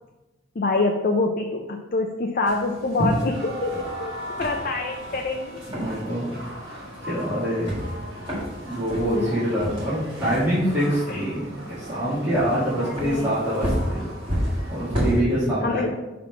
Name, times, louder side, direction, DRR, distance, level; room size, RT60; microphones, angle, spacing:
voice 1, 0.6-5.6 9.0-9.4 11.1-11.2 12.8-13.3 15.6-16.0, left 3 dB, 45° left, 2 dB, 0.5 m, -26 dB
sound 1, 2.5-15.2, equal, 25° right, 1.9 m, -31 dB
sound 2, 3.3-15.0, right 1 dB, 80° right, 1.3 m, -39 dB
voice 2, 5.7-6.2 6.6-7.7 8.7-14.0 14.4-15.8, equal, 10° right, -14 dB, 2.1 m, -25 dB
5.8 x 3.7 x 5.9 m, 1.1 s
head